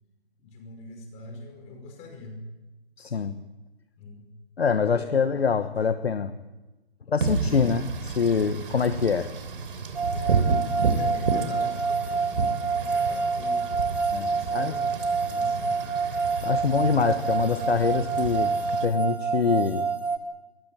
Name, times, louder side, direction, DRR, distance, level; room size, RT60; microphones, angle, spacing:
voice 1, 0.4-2.4 4.0-4.3 4.9-5.3 7.0-7.4 10.1-10.5 10.8-12.2 12.8-13.7 14.3-15.8, left 3 dB, 20° left, 4 dB, 5.3 m, -44 dB
voice 2, 3.0-3.3 4.6-6.3 7.1-9.3 14.1-14.7 16.4-19.9, left 5 dB, 70° left, 10 dB, 1.3 m, -25 dB
Wind / Rain, 7.2-18.9, right 4 dB, 55° right, 3.4 m, -31 dB
sound 1, 9.9-20.2, right 4 dB, 5° right, 0.9 m, -27 dB
22.0 x 18.5 x 8.8 m, 1.1 s
figure-of-eight pair, 145°, 32 cm